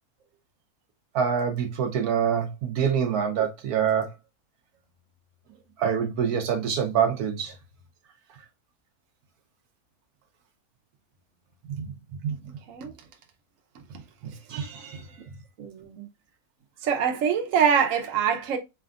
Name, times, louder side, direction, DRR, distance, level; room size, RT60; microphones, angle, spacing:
voice 1, 1.1-4.1 5.8-7.5 11.8-11.9 12.2-12.3 14.2-15.0, right 7 dB, 80° right, 1.3 m, -26 dB
voice 2, 15.6-16.1 16.8-18.6, right 7 dB, 60° right, 1.1 m, -24 dB
4.2 x 3.4 x 2.4 m
omnidirectional pair, 1.6 m